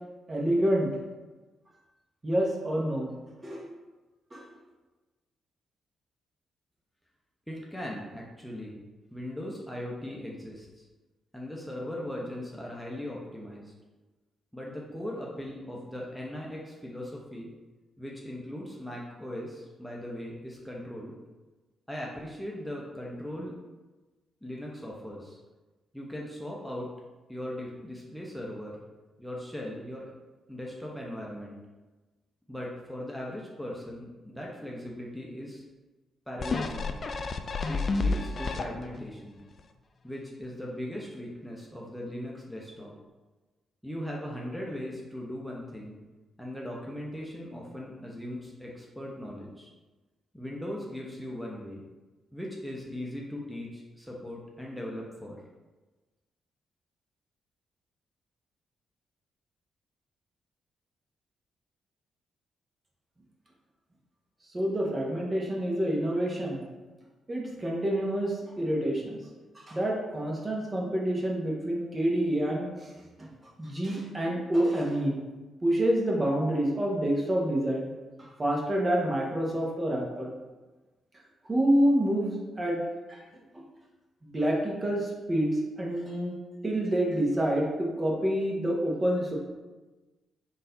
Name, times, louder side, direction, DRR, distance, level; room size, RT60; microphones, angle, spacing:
voice 1, 0.3-0.9 2.2-3.1 3.4-3.7 4.3-4.4 64.5-66.6 67.3-69.2 69.5-72.9 73.2-73.3 73.6-75.2 75.6-77.9 78.2-80.3 81.4-82.8 83.1-83.2 83.5-83.6 84.2-86.4 86.6-89.4, right 1 dB, 30° right, -2 dB, 1.1 m, -27 dB
voice 2, 7.5-8.8 9.1-10.9 11.3-13.7 14.5-17.5 18.0-21.1 21.9-23.5 24.4-25.4 25.9-26.9 27.3-28.8 29.2-30.1 30.5-31.6 32.5-35.6 36.3-36.9 37.7-39.4 40.0-42.9 43.8-46.0 46.4-49.7 50.3-51.8 52.3-55.4, left 1 dB, ahead, -3 dB, 0.8 m, -39 dB
sound 1, 36.4-39.1 39.6-39.7, left 3 dB, 45° left, 0.3 m, -30 dB
3.8 x 2.7 x 3.9 m, 1.2 s
hypercardioid pair, 40°, 0 cm